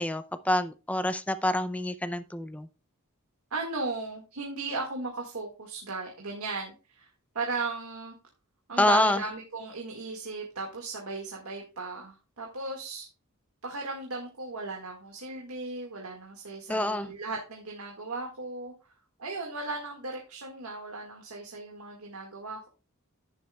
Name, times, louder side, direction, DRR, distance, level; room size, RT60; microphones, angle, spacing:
voice 1, 0.0-2.7 8.8-9.2 16.7-17.1, left 1 dB, 5° left, 0.4 m, -27 dB
voice 2, 3.5-7.1 7.3-8.1 8.7-13.1 13.6-18.7 19.2-22.7, right 3 dB, 90° right, 1.9 m, -36 dB
10.5 x 9.7 x 2.3 m
head